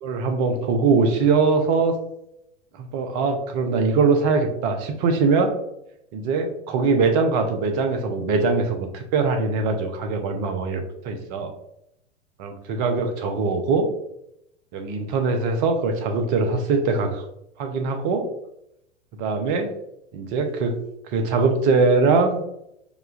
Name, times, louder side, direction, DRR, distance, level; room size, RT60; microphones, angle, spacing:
voice 1, 0.0-2.0 2.8-5.5 6.1-11.5 12.4-13.9 14.7-17.2 17.6-18.3 19.2-19.7 20.1-20.7 21.1-22.4, right 4 dB, 40° right, 5 dB, 0.6 m, -22 dB
4.8 x 2.2 x 2.4 m, 0.79 s
figure-of-eight pair, 95°, 36 cm